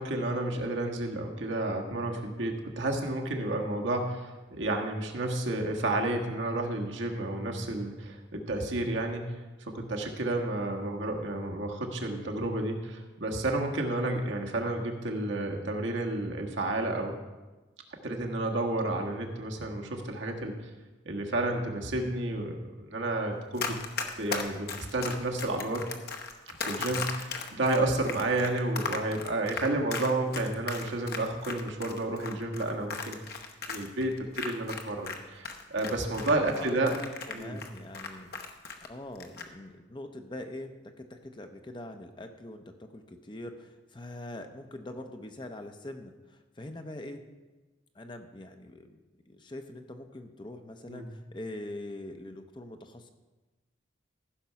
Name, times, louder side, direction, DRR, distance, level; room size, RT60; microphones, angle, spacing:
voice 1, 0.0-9.4 9.7-17.1 18.0-20.5 21.0-22.6 22.9-23.8 24.1-25.8 26.5-33.4 33.7-37.0 37.3-37.6 50.9-51.1, right 2 dB, 80° right, 1 dB, 1.5 m, -31 dB
Run, 23.6-35.2 35.4-38.9 39.2-39.5, left 4 dB, 50° left, 0.9 m, -36 dB
voice 2, 36.3-38.3 38.9-47.2 47.9-49.0 49.3-53.1, left 1 dB, 25° left, 6 dB, 0.7 m, -43 dB
14.5 x 6.0 x 5.7 m, 1.2 s
head